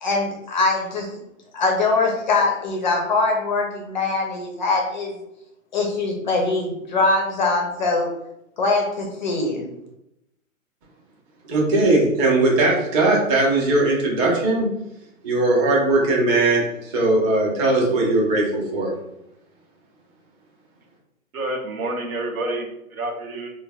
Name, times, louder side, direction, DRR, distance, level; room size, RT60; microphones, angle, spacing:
voice 1, 0.0-1.1 1.5-5.1 5.7-8.1 8.6-9.7, left 3 dB, 35° left, 1 dB, 0.4 m, -22 dB
voice 2, 11.5-14.7 15.2-18.9, right 2 dB, 25° right, -2 dB, 0.6 m, -19 dB
voice 3, 21.3-23.5, right 1 dB, 85° right, 3 dB, 0.8 m, -28 dB
3.1 x 2.1 x 2.3 m, 0.84 s
hypercardioid pair, 135°, 42 cm